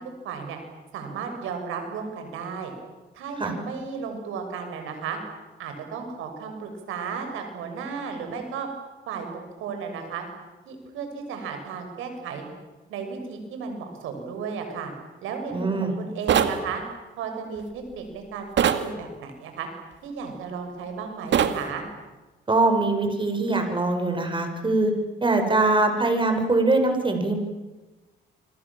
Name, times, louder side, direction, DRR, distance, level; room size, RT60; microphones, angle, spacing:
voice 1, 0.2-0.6 0.9-2.7 3.1-5.2 5.6-8.7 9.1-10.2 10.6-12.5 12.9-14.9 15.2-16.8 17.2-18.5 18.8-19.7 20.0-21.8, right 6 dB, 90° right, 5 dB, 6.7 m, -34 dB
voice 2, 15.5-15.9 22.5-24.9 25.2-27.4, right 2 dB, 25° right, 5 dB, 6.7 m, -22 dB
sound 1, 16.3-16.6 18.6-18.9 21.3-21.6, right 8 dB, 65° right, 2.2 m, -20 dB
28.5 x 25.0 x 7.5 m, 1.2 s
cardioid pair, 90°, 20 cm